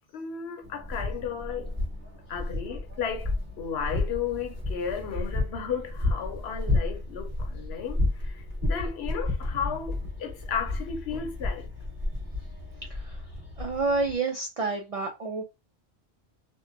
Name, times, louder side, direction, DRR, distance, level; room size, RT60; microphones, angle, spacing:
voice 1, 0.1-1.7 2.3-3.3 3.6-11.7, left 7 dB, 70° left, 0.9 m, -34 dB
sound 1, 0.6-14.2, left 2 dB, 20° right, 1.3 m, -32 dB
voice 2, 13.6-15.4, right 3 dB, 65° right, 0.3 m, -29 dB
2.7 x 2.1 x 2.5 m
omnidirectional pair, 1.1 m